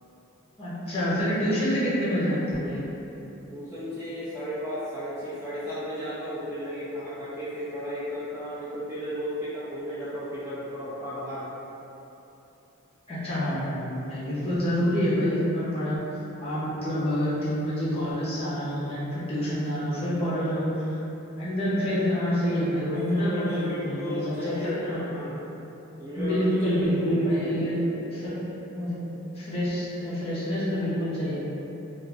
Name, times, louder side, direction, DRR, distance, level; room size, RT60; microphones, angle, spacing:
voice 1, 0.6-2.8 13.1-16.0 16.4-20.8 21.4-25.0 26.1-27.8 28.1-28.4 28.7-29.0 29.3-31.4, equal, 25° left, -10 dB, 0.7 m, -27 dB
voice 2, 3.5-11.5 22.8-25.4 26.0-27.7, equal, 10° right, -12 dB, 0.3 m, -34 dB
2.4 x 2.3 x 3.3 m, 2.9 s
head